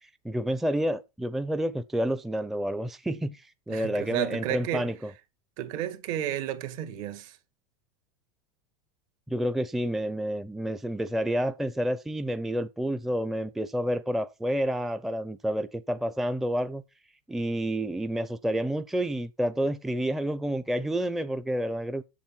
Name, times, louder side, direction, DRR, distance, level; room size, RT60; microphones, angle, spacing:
voice 1, 0.0-5.1 9.3-16.8 17.3-22.0, equal, ahead, 0.5 m, -29 dB
voice 2, 3.7-4.9 5.6-7.4, right 12 dB, 60° right, 2.1 m, -32 dB
7.4 x 7.4 x 5.8 m
supercardioid pair, 130°, 19 cm